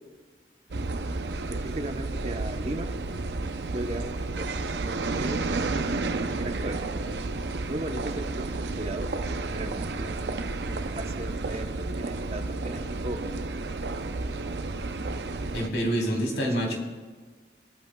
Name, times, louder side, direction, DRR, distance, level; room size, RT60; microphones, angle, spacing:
sound 1, 0.7-15.7, right 3 dB, 75° right, 0.6 m, -31 dB
voice 1, 1.5-2.9 3.7-4.6 4.8-5.7 6.3-6.8 7.7-9.2 9.5-13.2 16.0-16.7, right 1 dB, 35° right, 5 dB, 0.9 m, -37 dB
voice 2, 15.5-16.7, equal, 90° left, -1 dB, 3.5 m, -27 dB
19.0 x 13.5 x 2.3 m, 1.4 s
head